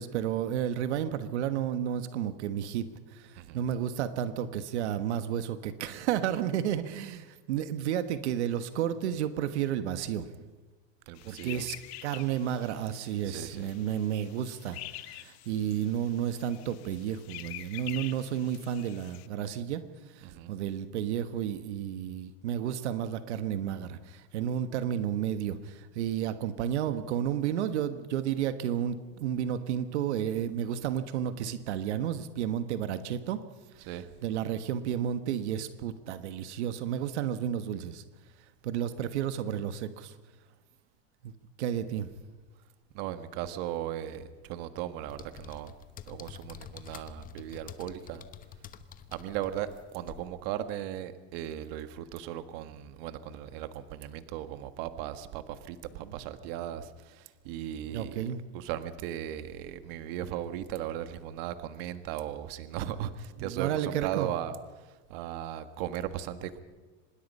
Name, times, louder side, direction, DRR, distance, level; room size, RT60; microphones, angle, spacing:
voice 1, 0.0-2.8 3.1-10.3 11.2-11.8 12.0-19.8 20.1-33.4 33.7-33.9 34.2-38.0 38.6-40.1 41.2-41.3 41.6-42.1 57.9-58.4 63.4-64.3, right 10 dB, 90° right, 10 dB, 1.4 m, -32 dB
voice 2, 11.1-11.7 13.2-13.7 20.2-20.6 33.8-34.2 42.9-45.7 46.1-48.2 49.1-58.3 58.5-66.6, right 11 dB, 60° right, 10 dB, 1.6 m, -37 dB
sound 1, 11.2-19.3, left 17 dB, 70° left, 1.3 m, -46 dB
sound 2, 45.1-50.3, left 8 dB, 25° left, 1.2 m, -48 dB
25.5 x 21.0 x 5.5 m, 1.3 s
supercardioid pair, 145°, 33 cm